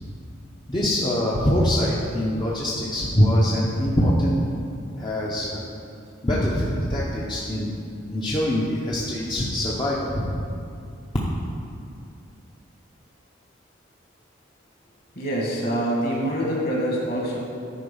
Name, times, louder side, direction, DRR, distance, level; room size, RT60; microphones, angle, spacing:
voice 1, 0.7-4.5 5.0-5.6 6.2-7.7 8.1-10.4, equal, 25° left, -5 dB, 0.7 m, -23 dB
voice 2, 15.1-17.4, right 1 dB, 50° left, -3 dB, 1.9 m, -25 dB
10.0 x 4.5 x 5.5 m, 2.5 s
head